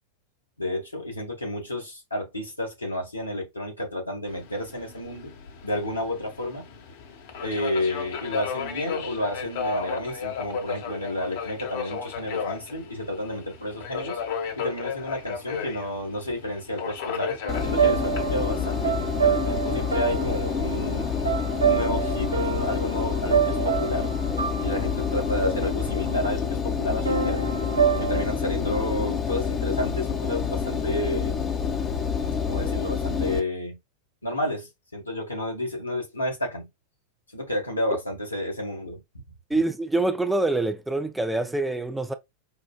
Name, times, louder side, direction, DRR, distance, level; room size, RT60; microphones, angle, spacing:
voice 1, 0.6-5.4 5.6-6.7 7.4-14.2 14.6-21.1 21.6-24.1 24.6-27.4 28.0-31.3 32.5-33.8 34.2-36.7 37.3-39.0, left 1 dB, 85° left, 1.4 m, -31 dB
Subway metro underground, 4.3-22.7, left 6 dB, 55° left, 0.9 m, -35 dB
sound 1, 17.4-26.3 27.1-28.2, right 7 dB, 75° right, 0.4 m, -27 dB
Engine, 17.5-33.4, left 6 dB, 25° left, 0.7 m, -28 dB
voice 2, 39.5-42.1, right 2 dB, 5° right, 0.4 m, -25 dB
5.5 x 2.2 x 2.2 m
figure-of-eight pair, 90°, 0 cm